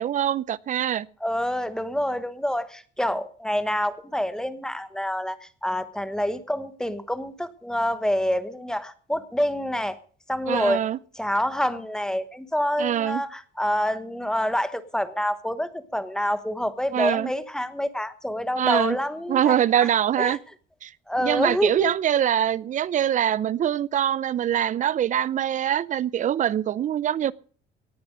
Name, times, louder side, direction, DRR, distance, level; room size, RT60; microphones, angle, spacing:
voice 1, 0.0-1.1 10.5-11.0 12.8-13.2 16.9-17.3 18.6-19.0 19.3-20.4 20.8-20.9 21.2-27.3, right 10 dB, 40° right, 0.6 m, -23 dB
voice 2, 1.2-10.0 10.3-10.8 11.1-19.9 20.2-20.4 21.1-21.9, equal, 5° left, 1.2 m, -27 dB
18.5 x 10.5 x 5.1 m
cardioid pair, 135°, 19 cm